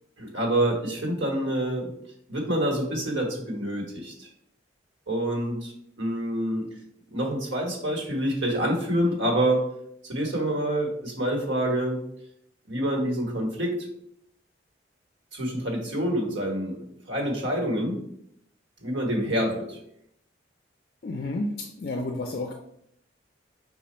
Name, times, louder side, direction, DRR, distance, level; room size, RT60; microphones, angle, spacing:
voice 1, 0.2-1.9 2.3-4.3 5.1-5.7 6.0-6.7 7.1-9.7 10.1-12.0 12.7-13.9 15.3-18.0 18.8-19.8, right 1 dB, 80° right, 0 dB, 1.2 m, -27 dB
voice 2, 21.0-22.5, left 2 dB, 50° left, 3 dB, 0.4 m, -31 dB
5.0 x 2.3 x 4.2 m, 0.72 s
head